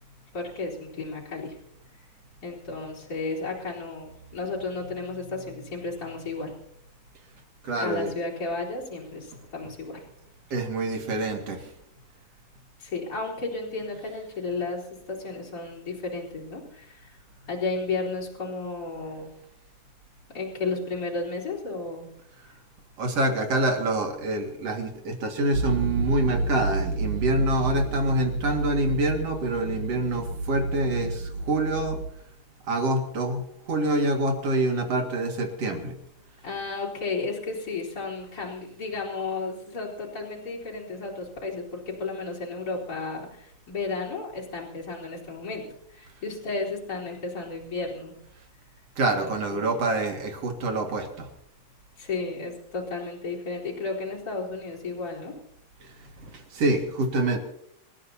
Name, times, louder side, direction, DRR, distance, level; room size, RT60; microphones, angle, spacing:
voice 1, 0.3-1.6 2.4-6.5 7.8-10.0 12.8-17.2 17.5-19.3 20.3-22.1 22.4-22.6 36.4-48.1 49.3-49.7 52.0-55.4, left 3 dB, 30° left, -5 dB, 4.2 m, -33 dB
voice 2, 7.6-8.1 10.5-11.7 23.0-32.0 32.7-36.0 49.0-51.3 55.8-57.4, right 2 dB, 55° right, 3 dB, 2.9 m, -26 dB
sound 1, 25.5-32.1, right 3 dB, 85° right, 2.9 m, -30 dB
27.5 x 14.5 x 2.8 m, 0.73 s
omnidirectional pair, 3.6 m